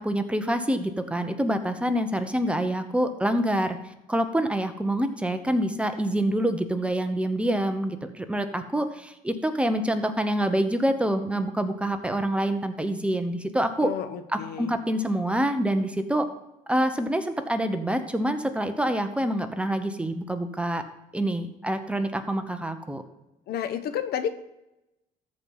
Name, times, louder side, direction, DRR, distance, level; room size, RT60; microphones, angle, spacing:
voice 1, 0.0-3.8 4.1-13.9 14.3-16.3 16.7-20.8 21.1-23.0, right 1 dB, 5° right, 7 dB, 0.9 m, -26 dB
voice 2, 13.8-14.7 23.5-24.3, left 9 dB, 70° left, 11 dB, 0.9 m, -30 dB
14.0 x 4.7 x 5.4 m, 0.93 s
cardioid pair, 110°, 17 cm